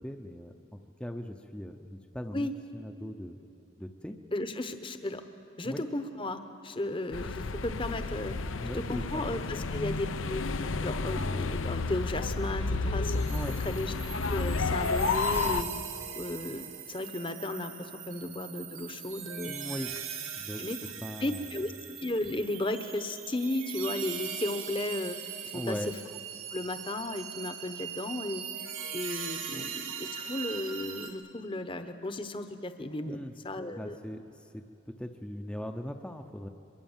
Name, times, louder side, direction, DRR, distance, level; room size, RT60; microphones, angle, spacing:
voice 1, 0.0-3.4 3.8-4.2 5.6-5.8 8.6-9.4 13.3-13.6 19.5-19.9 20.4-20.6 21.0-21.6 25.5-25.9 29.5-29.7 33.0-33.3 33.7-36.5, equal, 5° left, 6 dB, 0.7 m, -40 dB
voice 2, 4.3-5.2 5.6-8.3 8.8-10.4 10.8-13.2 13.6-13.9 14.3-15.7 16.1-19.5 20.6-20.8 21.2-21.7 22.0-25.2 25.5-25.8 26.5-28.4 28.9-33.2 33.4-34.0, left 1 dB, 25° left, 9 dB, 0.9 m, -34 dB
sound 1, 7.1-15.6, left 3 dB, 80° left, 0.8 m, -31 dB
sound 2, 13.1-31.1, right 8 dB, 85° right, 2.4 m, -41 dB
23.5 x 23.0 x 7.3 m, 2.7 s
head